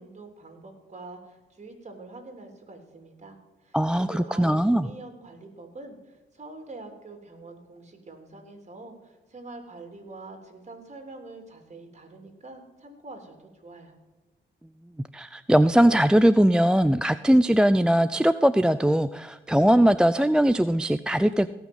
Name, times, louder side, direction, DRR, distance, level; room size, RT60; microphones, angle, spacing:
voice 1, 0.0-14.0, right 3 dB, 35° right, 4 dB, 3.5 m, -45 dB
voice 2, 3.7-4.9 15.1-21.5, equal, 5° right, 13 dB, 0.4 m, -20 dB
18.0 x 6.2 x 5.5 m, 1.1 s
cardioid pair, 65°, 20 cm